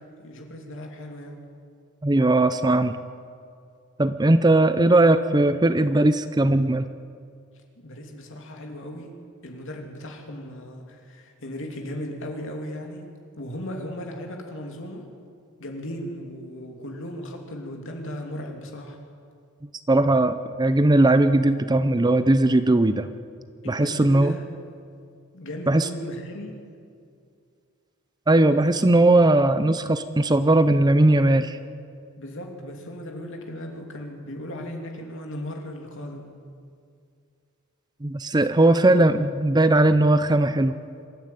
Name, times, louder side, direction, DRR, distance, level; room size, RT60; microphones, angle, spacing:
voice 1, 0.0-1.4 7.8-9.2 9.4-13.1 13.4-15.1 15.6-19.0 23.6-24.5 25.3-26.6 28.6-28.8 32.2-36.4 38.3-38.9, left 1 dB, 60° left, 2 dB, 2.9 m, -37 dB
voice 2, 2.0-3.0 4.0-6.8 19.9-23.1 23.7-24.3 25.7-25.9 28.3-31.6 38.0-40.8, right 2 dB, 20° right, 11 dB, 0.6 m, -19 dB
25.5 x 13.0 x 9.2 m, 2.3 s
head